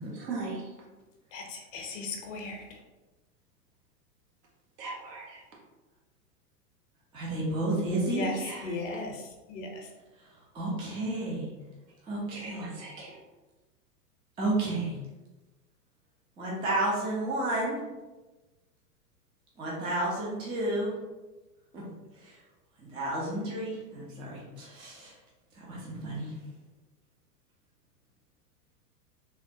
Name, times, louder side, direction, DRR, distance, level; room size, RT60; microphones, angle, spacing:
voice 1, 0.1-0.9 4.8-5.5 8.3-9.0 12.3-13.2, right 3 dB, 75° right, -2 dB, 1.1 m, -40 dB
voice 2, 1.3-2.8 8.1-9.2 9.5-9.9, left 2 dB, 50° left, 1 dB, 0.7 m, -36 dB
voice 3, 7.1-8.3 10.5-11.5 12.1-12.7 14.4-14.9 16.4-17.8 19.6-20.9 21.7-21.8 22.9-25.1 25.7-26.3, right 2 dB, 10° right, -5 dB, 0.4 m, -31 dB
3.3 x 2.1 x 2.7 m, 1.1 s
hypercardioid pair, 100°, 48 cm